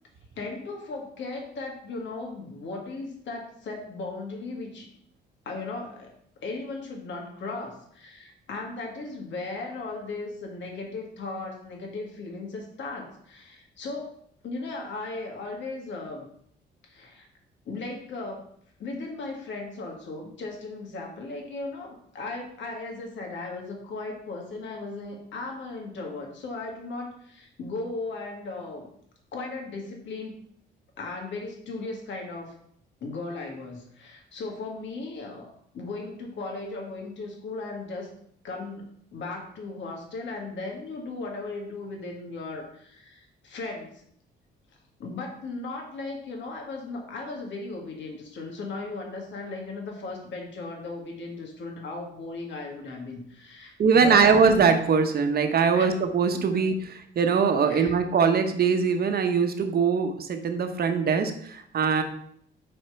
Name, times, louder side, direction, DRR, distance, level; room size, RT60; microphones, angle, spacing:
voice 1, 0.4-4.9 5.5-14.1 14.4-16.3 16.8-17.3 17.7-18.4 18.8-28.9 29.3-30.3 31.0-32.5 33.0-38.1 38.4-44.0 45.0-54.3 55.8-55.9 56.3-56.6 57.7-57.9, left 3 dB, 70° left, 1 dB, 1.8 m, -37 dB
voice 2, 53.8-62.0, right 5 dB, 50° right, 7 dB, 0.9 m, -22 dB
4.8 x 4.3 x 5.7 m, 0.67 s
cardioid pair, 90°, 20 cm